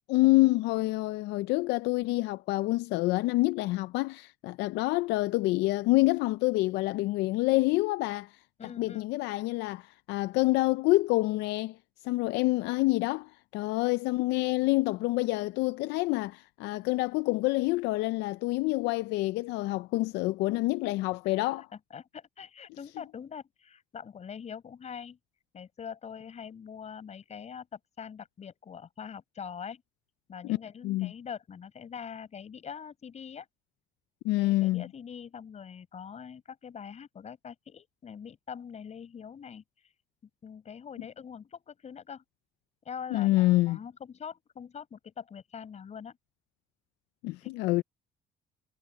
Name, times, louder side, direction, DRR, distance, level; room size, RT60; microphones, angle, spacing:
voice 1, 0.1-8.3 8.6-11.8 12.0-21.7 30.4-30.6 30.8-31.1 34.2-34.8 43.1-43.8 47.2-47.8, left 20 dB, 90° left, 0.5 m, -27 dB
voice 2, 8.6-9.1 21.2-21.5 21.9-25.2 25.5-29.8 30.3-33.5 34.4-39.6 40.4-42.2 42.8-46.2 47.4-47.6, left 7 dB, 40° left, 7.5 m, -43 dB
cardioid pair, 110°, 17 cm